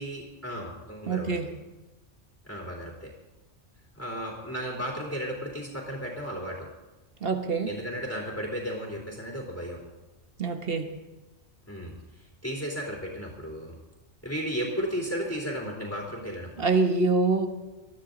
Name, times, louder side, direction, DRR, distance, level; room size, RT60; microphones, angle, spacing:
voice 1, 0.0-1.5 2.4-3.1 4.0-6.7 7.6-9.8 11.7-11.9 12.4-13.7 14.2-16.7, equal, 10° left, -3 dB, 3.2 m, -34 dB
voice 2, 1.1-1.5 7.2-7.7 10.4-10.8 16.6-17.5, right 3 dB, 55° right, 6 dB, 1.5 m, -25 dB
20.0 x 13.0 x 3.9 m, 1.1 s
omnidirectional pair, 1.2 m